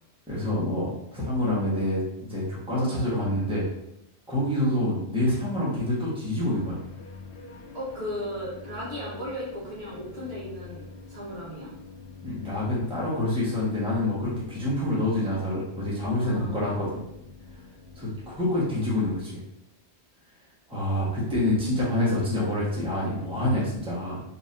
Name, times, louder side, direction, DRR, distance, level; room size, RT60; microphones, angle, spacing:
voice 1, 0.3-3.6 4.3-6.8 12.2-17.0 17.9-19.4 20.7-24.2, left 1 dB, 5° right, -7 dB, 1.1 m, -27 dB
sound 1, 6.6-19.2, left 4 dB, 70° left, 0.9 m, -45 dB
voice 2, 7.7-11.7 16.2-16.7, equal, 60° right, -6 dB, 1.4 m, -36 dB
4.1 x 2.9 x 2.6 m, 0.82 s
omnidirectional pair, 1.2 m